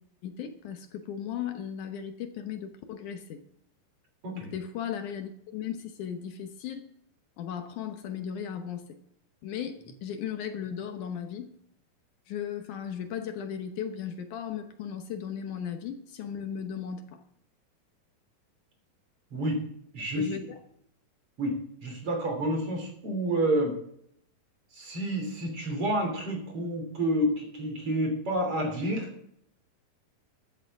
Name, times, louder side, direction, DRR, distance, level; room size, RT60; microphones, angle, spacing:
voice 1, 0.2-3.4 4.3-6.9 7.4-8.9 9.4-11.5 12.3-17.2 20.2-20.6, left 8 dB, 70° left, 6 dB, 2.2 m, -36 dB
voice 2, 19.9-20.4 21.4-23.7 24.7-29.1, right 1 dB, 40° right, 2 dB, 3.9 m, -29 dB
14.0 x 12.5 x 3.6 m, 0.69 s
omnidirectional pair, 4.3 m